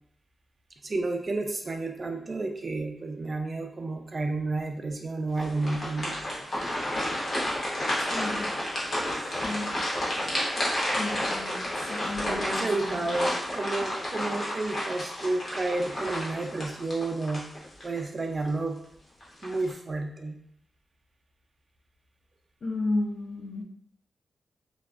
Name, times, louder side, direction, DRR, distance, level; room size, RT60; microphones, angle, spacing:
voice 1, 0.8-6.2 12.2-17.4 17.8-18.8 19.4-20.4, right 2 dB, 40° right, 4 dB, 0.3 m, -31 dB
sound 1, 5.3-18.0 18.5-18.6 19.2-19.7, left 1 dB, 45° left, 0.8 m, -31 dB
voice 2, 8.1-8.5 9.4-9.8 11.0-13.0 22.6-23.6, left 2 dB, 70° left, -1 dB, 0.4 m, -33 dB
2.3 x 2.3 x 2.3 m, 0.70 s
cardioid pair, 80°, 0 cm